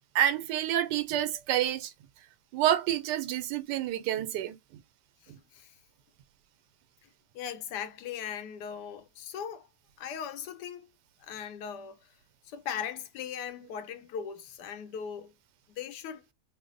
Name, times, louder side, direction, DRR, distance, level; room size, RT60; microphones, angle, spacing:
voice 1, 0.1-1.9 2.5-4.6, right 11 dB, 85° right, 1.2 m, -28 dB
voice 2, 5.2-5.7 7.0-7.1 7.3-9.7 10.0-10.9 11.2-12.1 12.4-15.3 15.7-16.3, left 8 dB, 85° left, 1.2 m, -39 dB
3.1 x 2.0 x 3.7 m
omnidirectional pair, 1.8 m